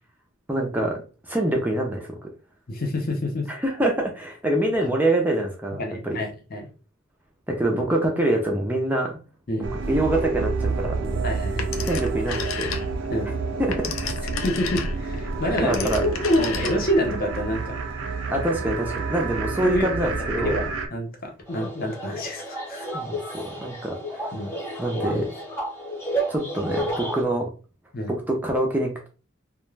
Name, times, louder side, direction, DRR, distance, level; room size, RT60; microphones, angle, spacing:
voice 1, 0.5-1.0 1.3-2.2 3.5-5.8 6.0-6.2 7.5-9.2 9.9-11.2 11.9-12.7 13.6-13.8 14.0-14.1 15.6-16.0 18.3-20.6 22.9-24.3 24.8-25.3 26.3-27.5 28.1-29.1, right 1 dB, 10° right, 0 dB, 0.4 m, -25 dB
voice 2, 2.7-3.5 4.8-4.9 5.8-6.7 9.5-9.7 11.2-11.9 13.1-13.3 14.4-17.8 19.6-20.1 20.4-22.9 24.3-24.5 27.9-28.1, left 1 dB, 45° left, 2 dB, 0.6 m, -27 dB
sound 1, 9.6-20.9, right 4 dB, 90° right, 0.5 m, -29 dB
Telephone, 11.6-13.1 13.5-17.1, left 6 dB, 90° left, 0.5 m, -33 dB
sound 2, 21.5-27.2, right 1 dB, 10° left, 0.9 m, -31 dB
2.3 x 2.1 x 3.2 m, 0.34 s
head